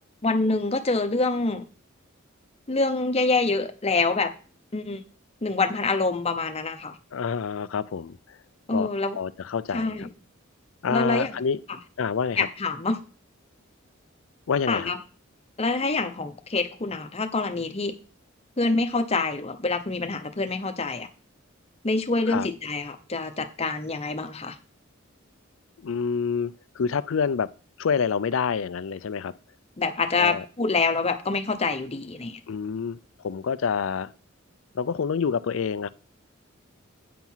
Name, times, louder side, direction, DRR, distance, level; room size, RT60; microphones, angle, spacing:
voice 1, 0.2-1.6 2.7-4.3 4.7-5.0 5.4-6.9 8.7-9.2 9.7-10.1 10.9-11.3 12.4-13.0 14.7-15.0 15.6-18.0 18.6-21.1 21.8-24.6 29.8-32.4, left 3 dB, 30° left, 0.8 m, -26 dB
voice 2, 7.1-8.4 8.7-8.9 9.1-10.1 10.8-11.6 12.0-12.5 14.5-14.9 22.3-22.5 25.8-27.5 27.8-29.3 30.2-30.4 32.5-34.1 34.7-35.9, left 6 dB, 70° left, 0.4 m, -27 dB
9.3 x 4.6 x 5.6 m
head